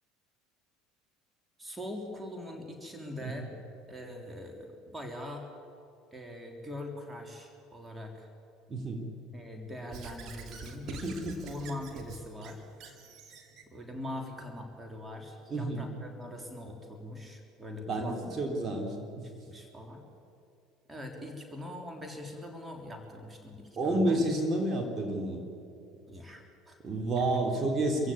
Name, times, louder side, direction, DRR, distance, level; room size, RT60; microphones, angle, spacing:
voice 1, 1.6-3.5 3.9-5.5 6.1-8.3 9.3-11.1 11.5-12.6 13.7-18.5 19.4-20.0 20.9-24.2 26.1-26.8 27.2-27.3, left 1 dB, 10° right, 3 dB, 3.5 m, -42 dB
voice 2, 8.7-9.0 11.0-11.4 15.5-15.8 17.9-19.3 23.8-25.4 26.8-28.1, right 2 dB, 25° right, 2 dB, 3.4 m, -30 dB
Squeak / Writing, 9.9-13.7, right 4 dB, 45° right, 2.7 m, -46 dB
25.5 x 16.0 x 8.6 m, 2.7 s
figure-of-eight pair, 65°, 0 cm